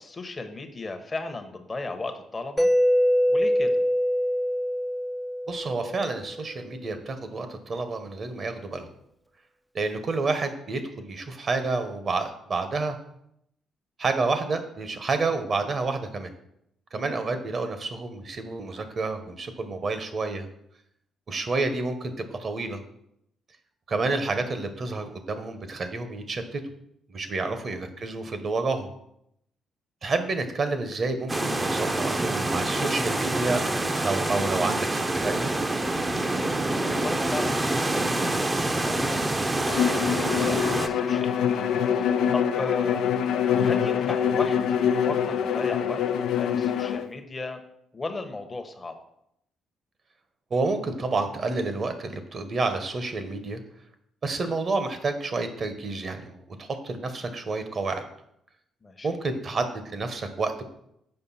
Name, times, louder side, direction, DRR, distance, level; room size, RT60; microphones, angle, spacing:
voice 1, 0.0-2.7 3.3-3.8 16.9-17.4 27.4-27.7 36.8-43.2 43.6-47.6 47.9-49.0 58.8-59.2, left 3 dB, 30° left, 6 dB, 1.0 m, -36 dB
Mallet percussion, 2.6-6.3, equal, 5° left, 0.5 m, -24 dB
voice 2, 5.5-8.9 9.7-13.0 14.0-16.3 16.9-20.5 21.3-22.8 23.9-26.6 27.1-28.9 30.0-33.6 34.0-35.5 50.5-53.6 54.2-58.0 59.0-60.6, right 3 dB, 45° right, 8 dB, 1.1 m, -29 dB
sound 1, 31.3-40.9, right 2 dB, 25° right, 0.7 m, -26 dB
Bowed string instrument, 39.7-47.1, left 8 dB, 70° left, 0.4 m, -25 dB
6.7 x 5.2 x 4.2 m, 0.76 s
hypercardioid pair, 50°, 0 cm